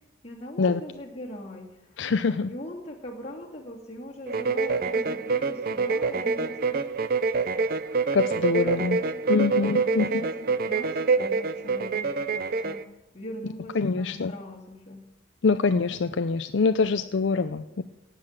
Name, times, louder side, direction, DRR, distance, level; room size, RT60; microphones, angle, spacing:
voice 1, 0.2-2.0 2.5-6.9 7.4-8.2 8.4-12.8 13.1-15.0, equal, 30° left, -2 dB, 2.6 m, -41 dB
voice 2, 2.0-2.5 8.1-9.0 9.3-10.1 13.8-14.3 15.4-17.8, left 4 dB, 65° left, 10 dB, 0.5 m, -24 dB
sound 1, 4.3-12.8, right 4 dB, 45° right, 0.5 m, -26 dB
18.0 x 6.7 x 7.4 m, 1.0 s
head